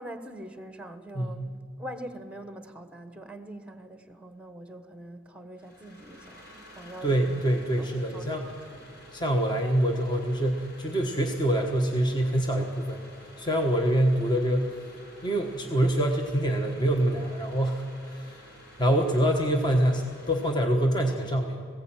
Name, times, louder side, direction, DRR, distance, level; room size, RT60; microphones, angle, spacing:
voice 1, 0.0-7.4 7.8-8.3 8.7-8.9, right 1 dB, 5° right, 9 dB, 1.1 m, -43 dB
voice 2, 1.1-1.5 7.0-8.4 9.1-13.0 13.4-14.9 15.2-18.4 18.8-21.7, right 1 dB, 20° left, 2 dB, 1.3 m, -25 dB
sound 1, 5.6-20.5, equal, 55° left, 7.1 m, -51 dB
20.0 x 16.5 x 8.9 m, 2.1 s
head